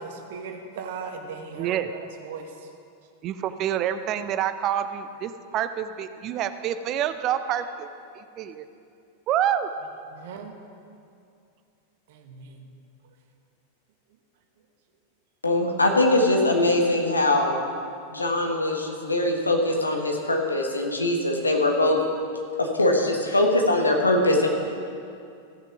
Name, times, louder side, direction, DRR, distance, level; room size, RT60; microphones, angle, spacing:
voice 1, 0.0-2.7 10.1-10.5 12.1-12.7, right 5 dB, 55° right, 5 dB, 1.1 m, -38 dB
voice 2, 1.6-1.9 3.2-7.9 8.1-8.6 9.3-9.7, right 10 dB, 35° right, 11 dB, 0.5 m, -27 dB
voice 3, 15.4-17.6 18.1-22.0 22.6-24.5, left 1 dB, 80° left, 2 dB, 1.3 m, -22 dB
15.0 x 6.6 x 6.0 m, 2.5 s
figure-of-eight pair, 90°, 0 cm